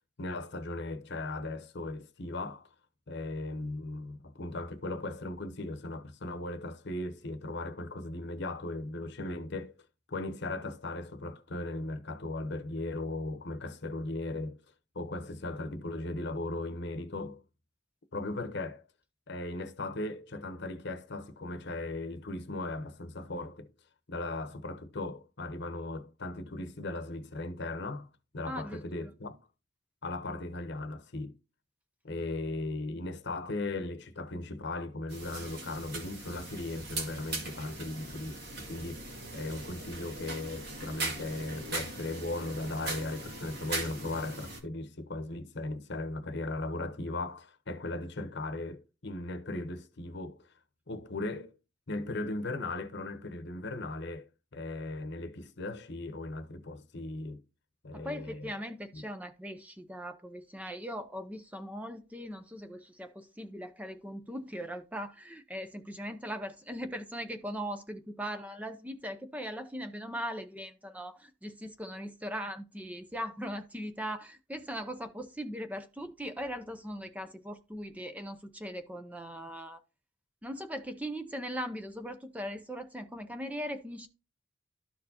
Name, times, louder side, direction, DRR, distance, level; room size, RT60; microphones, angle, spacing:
voice 1, 0.2-2.7 3.1-9.7 10.1-14.6 14.9-17.4 18.1-18.8 19.3-23.7 24.1-28.1 28.3-29.4 30.0-31.4 32.0-50.5 50.9-51.5 51.9-57.4 57.8-58.5 58.9-59.0, left 2 dB, 55° left, 0.9 m, -37 dB
voice 2, 28.5-29.1 57.9-79.8 80.4-84.1, equal, 5° right, 0.5 m, -40 dB
sound 1, 35.1-44.6, right 3 dB, 55° right, 1.9 m, -40 dB
12.5 x 4.5 x 2.8 m
head